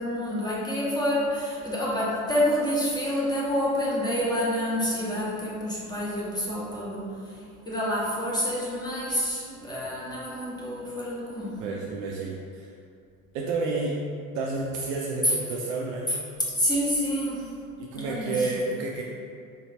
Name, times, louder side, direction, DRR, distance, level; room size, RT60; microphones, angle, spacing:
voice 1, 0.0-7.4 7.7-11.6 16.5-17.5 17.9-18.5, equal, 10° left, -7 dB, 1.1 m, -28 dB
voice 2, 11.6-12.7 13.3-14.0 14.3-16.2 17.8-19.0, right 3 dB, 45° right, -2 dB, 0.5 m, -30 dB
4.3 x 2.8 x 2.8 m, 2.4 s
figure-of-eight pair, 65°, 44 cm